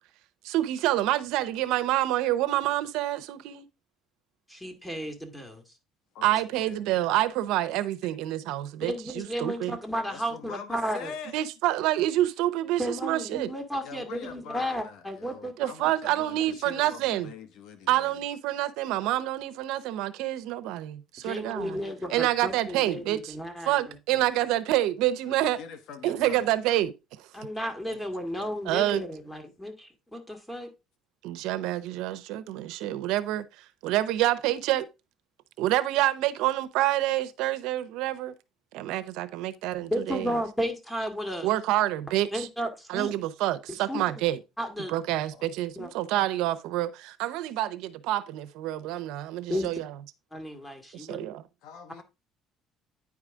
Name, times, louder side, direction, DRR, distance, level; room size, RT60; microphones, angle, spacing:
voice 1, 0.4-3.7 6.2-9.8 11.3-13.5 15.6-17.3 17.9-21.8 22.1-23.4 23.7-25.6 26.0-27.3 28.7-29.0 31.2-34.9 35.6-38.3 38.7-40.4 41.4-42.5 42.9-44.4 44.9-49.9 50.9-51.4, right 14 dB, 85° right, 0.7 m, -27 dB
voice 2, 4.5-5.6 8.8-11.1 12.8-15.5 21.2-23.9 27.3-30.7 39.8-41.5 42.3-43.1 43.9-44.2 44.6-45.0 45.8-45.9 49.5-49.7 50.3-51.3, equal, 5° left, 1.9 m, -33 dB
voice 3, 6.1-6.8 8.0-8.1 10.1-11.4 13.8-18.2 21.6-22.5 22.9-23.0 25.3-26.6 27.9-28.9 45.1-45.5 51.6-52.0, left 6 dB, 75° left, 1.2 m, -44 dB
9.7 x 4.8 x 3.6 m
cardioid pair, 115°, 0 cm